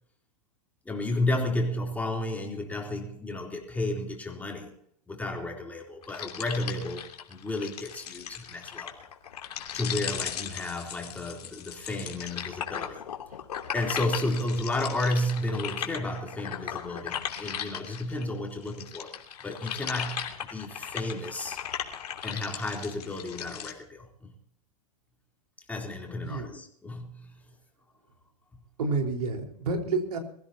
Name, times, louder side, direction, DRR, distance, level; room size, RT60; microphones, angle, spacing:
voice 1, 0.9-4.7 5.1-9.0 9.7-13.0 13.7-21.6 22.2-24.3 25.7-27.3, left 1 dB, 10° left, 3.6 m, -32 dB
sound 1, 6.0-18.2 18.6-23.7, left 9 dB, 80° left, 3.0 m, -37 dB
voice 2, 26.2-26.5 28.8-30.2, right 3 dB, 75° right, 4.6 m, -29 dB
23.0 x 16.0 x 2.9 m
hypercardioid pair, 125°, 20 cm